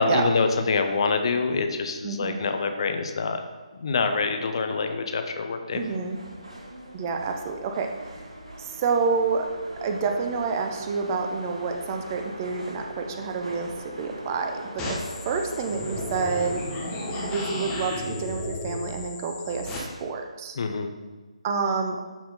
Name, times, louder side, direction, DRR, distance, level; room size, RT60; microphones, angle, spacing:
voice 1, 0.0-3.4 3.7-5.8 20.6-20.9, left 4 dB, 45° left, 7 dB, 0.8 m, -25 dB
voice 2, 2.0-2.4 5.7-6.2 6.9-7.9 8.6-9.5 9.8-16.6 17.3-19.7 20.0-20.6 21.4-22.0, right 5 dB, 25° right, 4 dB, 0.7 m, -28 dB
sound 1, 5.7-17.5, right 1 dB, 65° right, 2.7 m, -40 dB
sound 2, 14.8-19.8, left 1 dB, 15° left, 1.3 m, -33 dB
11.5 x 4.6 x 3.8 m, 1.3 s
figure-of-eight pair, 145°, 4 cm